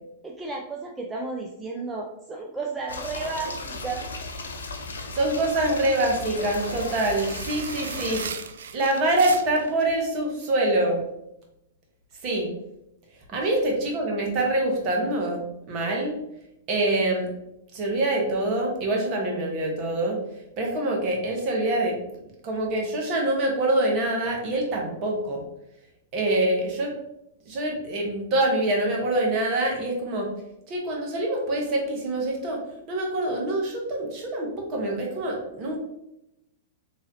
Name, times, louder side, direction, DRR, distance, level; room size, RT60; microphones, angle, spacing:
voice 1, 0.2-4.1 13.3-13.5, right 3 dB, 15° right, -1 dB, 0.4 m, -33 dB
sound 1, 2.9-8.3, left 3 dB, 90° left, 0.5 m, -36 dB
voice 2, 5.1-8.2 8.7-11.0 12.2-12.5 13.3-16.2 16.7-17.3 17.7-20.2 20.6-21.9 22.4-25.4 26.1-26.9 27.5-30.3 30.7-32.6 32.9-35.8, right 1 dB, 40° right, 0 dB, 1.2 m, -25 dB
sound 2, 5.3-9.7, right 6 dB, 75° right, 0.4 m, -38 dB
3.6 x 3.1 x 2.8 m, 0.84 s
hypercardioid pair, 120°, 0 cm